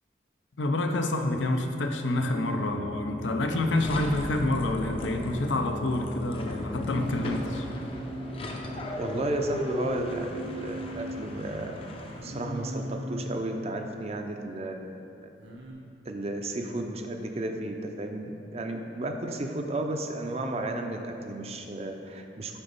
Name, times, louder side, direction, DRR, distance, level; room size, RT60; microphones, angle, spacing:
voice 1, 0.6-7.7, left 2 dB, 85° left, 5 dB, 0.6 m, -28 dB
sound 1, 2.2-7.6, left 2 dB, 50° left, 0.9 m, -37 dB
sound 2, 3.8-12.6, equal, 30° left, 0.5 m, -37 dB
Singing, 7.0-9.4 10.0-11.2 12.1-13.4 15.4-15.7, right 1 dB, 80° right, 1.1 m, -39 dB
voice 2, 9.0-11.8 12.2-14.9 15.2-15.3 16.1-22.6, right 1 dB, 35° right, 4 dB, 0.5 m, -33 dB
9.0 x 3.9 x 5.3 m, 2.7 s
head